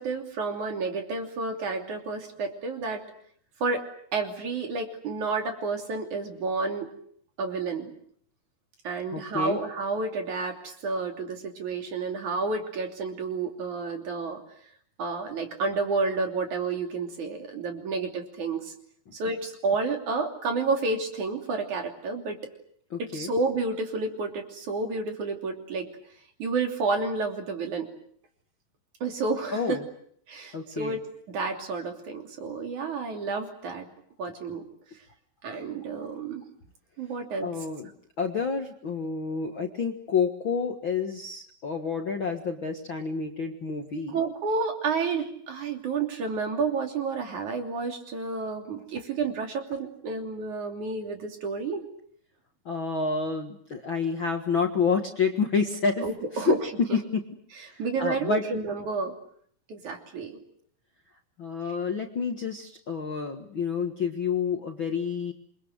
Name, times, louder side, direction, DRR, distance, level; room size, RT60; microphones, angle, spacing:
voice 1, 0.0-3.0 3.6-3.9 4.1-6.9 7.4-7.9 8.8-14.4 15.0-18.7 19.1-22.4 23.0-25.9 26.4-27.9 29.0-29.8 30.3-31.0 31.3-33.9 34.2-34.6 35.4-36.4 37.0-37.5 44.1-51.8 56.0-56.7 57.8-59.1 59.7-60.4, right 4 dB, 55° right, 4 dB, 4.3 m, -30 dB
voice 2, 9.1-9.6 22.9-23.3 29.5-29.8 30.5-31.0 37.4-37.9 38.2-44.2 52.7-56.1 56.3-56.6 57.7-58.4 61.4-65.3, left 5 dB, 45° left, 3 dB, 1.8 m, -29 dB
27.5 x 23.0 x 8.0 m, 0.64 s
omnidirectional pair, 4.3 m